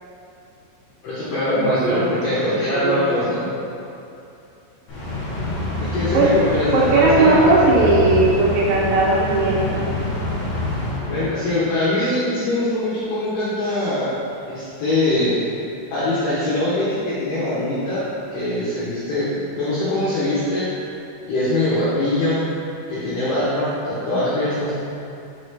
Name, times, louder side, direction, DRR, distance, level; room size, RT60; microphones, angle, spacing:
voice 1, 1.0-3.5 5.8-7.5 11.1-14.1 14.5-15.4 15.9-18.0 18.3-20.7 21.2-22.4 22.9-24.7, left 1 dB, 80° left, -11 dB, 1.9 m, -22 dB
voice 2, 1.8-2.1 2.4-3.0 6.1-6.3 6.7-10.1, right 3 dB, 80° right, -4 dB, 3.0 m, -18 dB
sound 1, 4.9-11.7, left 3 dB, 65° left, 1.7 m, -26 dB
6.0 x 4.9 x 3.3 m, 2.8 s
omnidirectional pair, 5.4 m